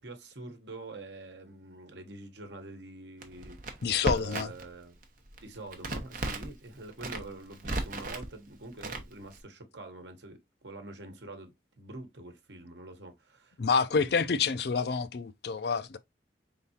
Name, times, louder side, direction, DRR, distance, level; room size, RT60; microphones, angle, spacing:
voice 1, 0.0-5.0 5.4-13.5 13.9-14.5, right 2 dB, 80° right, 1.1 m, -46 dB
Crackle, 3.2-4.7 5.0-6.5 6.9-8.3 8.8-9.4, right 2 dB, 45° right, 0.9 m, -35 dB
voice 2, 3.8-4.5 13.6-16.0, left 5 dB, 65° left, 0.5 m, -28 dB
4.6 x 3.6 x 2.8 m
head